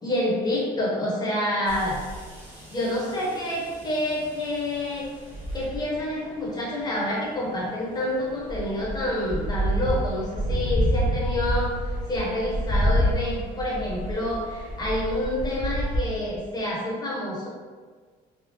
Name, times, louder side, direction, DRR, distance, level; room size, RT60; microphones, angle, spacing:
voice 1, 0.0-2.0 2.7-5.1 5.5-17.5, left 1 dB, 25° left, -6 dB, 1.1 m, -28 dB
sound 1, 1.7-16.0, equal, 10° right, 0.9 m, -30 dB
3.5 x 2.3 x 2.8 m, 1.5 s
cardioid pair, 110°, 17 cm